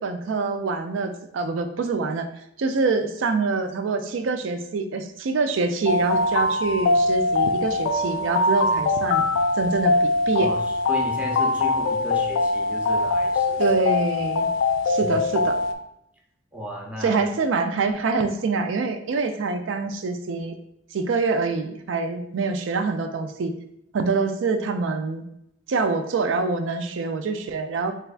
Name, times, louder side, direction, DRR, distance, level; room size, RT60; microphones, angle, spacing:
voice 1, 0.0-2.3 2.6-9.2 9.6-10.5 13.6-14.5 14.9-15.6 17.0-20.6 20.9-23.5 23.9-25.2 25.7-27.9, right 4 dB, 80° right, 8 dB, 0.4 m, -25 dB
sound 1, 5.9-15.7, left 2 dB, 85° left, 0.3 m, -22 dB
voice 2, 10.9-13.6 15.0-15.2 16.5-17.2, left 1 dB, 10° right, -2 dB, 0.7 m, -34 dB
3.4 x 3.3 x 2.4 m, 0.78 s
head